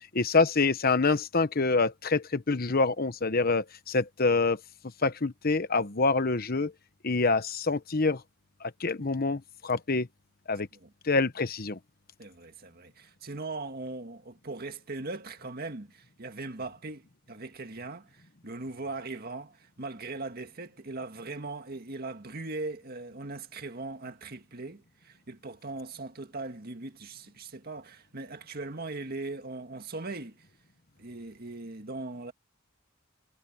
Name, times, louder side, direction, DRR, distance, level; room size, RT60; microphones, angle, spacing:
voice 1, 0.1-4.6 5.0-6.7 7.0-8.2 8.6-10.1 10.5-10.7 11.0-11.8, left 3 dB, 50° left, 1.1 m, -26 dB
voice 2, 12.2-30.5 31.0-32.3, right 3 dB, 50° right, 1.9 m, -39 dB
head